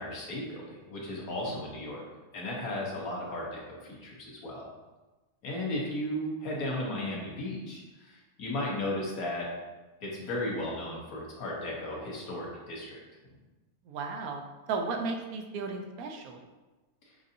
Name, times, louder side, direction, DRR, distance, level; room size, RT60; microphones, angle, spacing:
voice 1, 0.0-2.0 2.3-4.7 5.4-9.5 10.0-13.0, left 1 dB, 80° left, -3 dB, 1.5 m, -35 dB
voice 2, 13.9-14.4 14.7-16.4, right 4 dB, 90° right, 3 dB, 1.0 m, -34 dB
6.1 x 2.6 x 2.7 m, 1.2 s
omnidirectional pair, 1.5 m